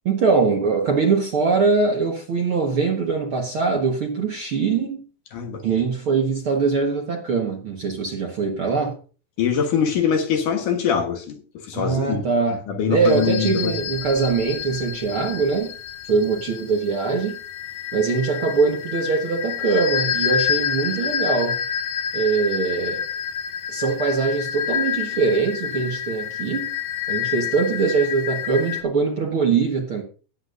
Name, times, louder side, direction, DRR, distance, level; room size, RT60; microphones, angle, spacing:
voice 1, 0.1-5.0 5.6-9.0 11.7-12.6 12.9-15.7 16.0-17.4 17.9-21.6 22.1-23.0 23.7-26.7 27.1-30.0, right 4 dB, 50° right, 1.7 m, -22 dB
voice 2, 5.3-5.6 9.4-11.4 11.7-12.3 12.7-13.7, left 7 dB, 65° left, 2.7 m, -23 dB
sound 1, 13.0-28.8, left 9 dB, 90° left, 3.1 m, -28 dB
18.5 x 8.6 x 2.6 m
omnidirectional pair, 4.1 m